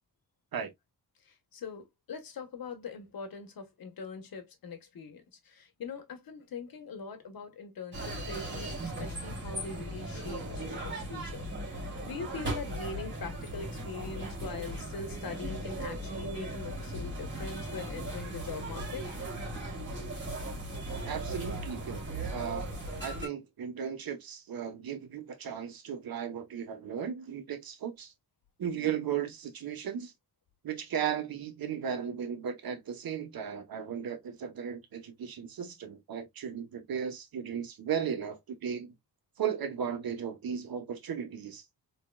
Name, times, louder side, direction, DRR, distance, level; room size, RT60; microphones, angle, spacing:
voice 1, 1.3-11.5 11.7-19.1, left 4 dB, 70° left, 1.3 m, -42 dB
sound 1, 7.9-23.3, right 1 dB, 30° right, 2.7 m, -38 dB
voice 2, 21.1-22.0 22.3-22.7 23.0-28.1 28.6-30.1 30.6-38.9 39.4-41.6, right 8 dB, 70° right, 1.2 m, -36 dB
4.4 x 3.3 x 2.3 m
cardioid pair, 95°, 36 cm